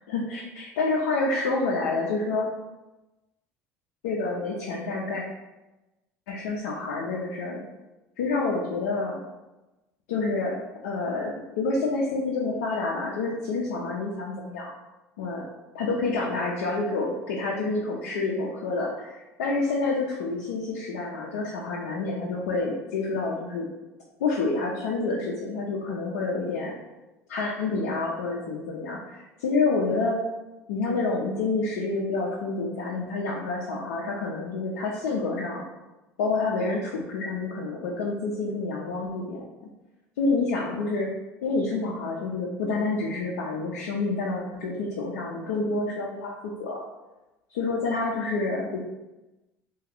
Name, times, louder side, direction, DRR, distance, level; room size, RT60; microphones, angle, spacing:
voice 1, 0.1-2.5 4.0-5.2 6.3-7.6 8.2-9.2 10.1-10.6 10.8-14.7 15.2-15.4 15.7-23.7 24.2-26.8 27.3-30.2 30.7-35.6 36.2-39.4 40.2-41.1 41.4-46.8 47.5-48.8, left 3 dB, 80° left, -2 dB, 0.4 m, -28 dB
2.3 x 2.3 x 3.4 m, 1.1 s
hypercardioid pair, 75°, 8 cm